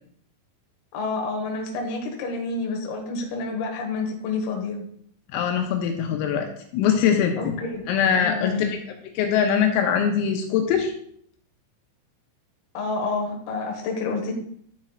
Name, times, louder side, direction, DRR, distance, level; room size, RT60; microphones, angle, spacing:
voice 1, 0.9-4.8 7.4-7.8 8.2-8.7 12.7-14.3, left 3 dB, 65° left, 1 dB, 2.8 m, -28 dB
voice 2, 5.3-7.6 7.9-8.8 9.2-10.9, left 7 dB, 80° left, 4 dB, 3.3 m, -22 dB
11.5 x 7.4 x 2.4 m, 0.64 s
omnidirectional pair, 6.0 m